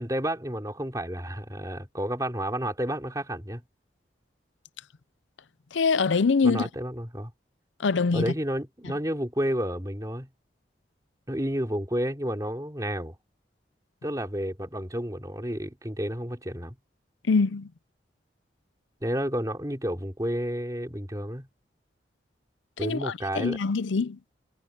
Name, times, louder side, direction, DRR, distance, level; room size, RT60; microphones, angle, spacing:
voice 1, 0.0-3.6 6.4-7.3 8.1-10.3 11.3-13.2 14.0-16.8 19.0-21.5 22.8-23.6, equal, 20° right, 3.7 m, -31 dB
voice 2, 5.7-6.7 7.8-8.3 17.3-17.7 22.8-24.2, left 4 dB, 90° left, 0.6 m, -24 dB
head